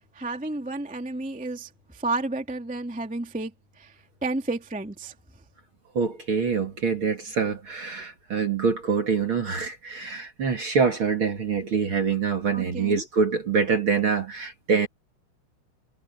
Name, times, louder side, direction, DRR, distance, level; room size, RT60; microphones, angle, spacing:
voice 1, 0.1-3.9 4.2-5.1 12.5-13.0, right 2 dB, 5° right, 0.9 m, -31 dB
voice 2, 5.9-14.9, right 5 dB, 40° right, 2.1 m, -25 dB
omnidirectional pair, 4.8 m